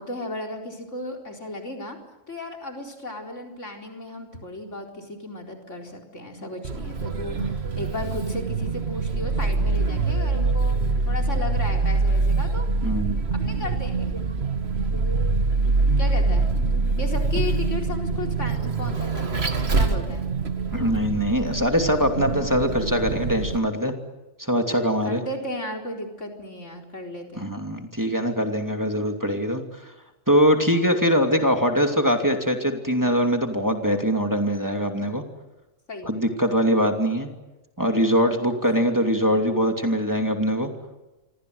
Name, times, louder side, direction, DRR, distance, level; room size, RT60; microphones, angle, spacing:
voice 1, 0.0-2.0 2.3-12.7 13.3-14.2 16.0-16.5 17.0-20.3 25.0-27.5 35.9-36.3 38.8-39.1, left 1 dB, 70° left, 2 dB, 4.7 m, -35 dB
Vehicle, 6.6-23.6, right 3 dB, 55° right, 2.1 m, -24 dB
voice 2, 12.8-13.2 20.7-23.9 24.4-25.2 27.4-29.6 30.3-35.2 36.0-37.3 37.8-40.7, equal, 15° right, 4 dB, 2.7 m, -22 dB
27.5 x 25.0 x 8.0 m, 1.1 s
omnidirectional pair, 1.3 m